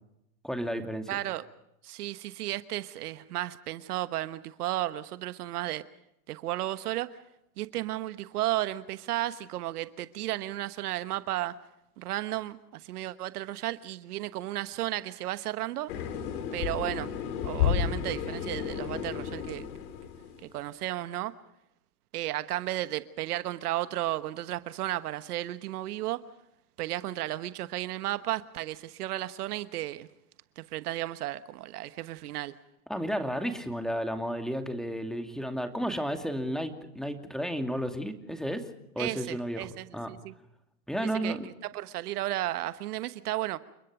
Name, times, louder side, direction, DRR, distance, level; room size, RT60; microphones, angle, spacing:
voice 1, 0.4-1.1 32.9-38.6 38.9-39.7 39.9-40.1 40.9-41.5, equal, ahead, 6 dB, 2.5 m, -32 dB
voice 2, 1.1-1.4 1.8-5.8 6.3-7.1 7.6-11.5 12.0-15.9 16.5-17.1 17.4-19.7 20.5-21.3 22.1-26.2 26.8-30.1 30.6-32.5 39.0-40.3 41.0-41.4 41.7-43.6, right 15 dB, 70° right, 13 dB, 1.3 m, -33 dB
sound 1, 15.9-20.5, left 9 dB, 65° left, 4.1 m, -32 dB
29.5 x 21.5 x 5.0 m, 0.84 s
hypercardioid pair, 105°, 48 cm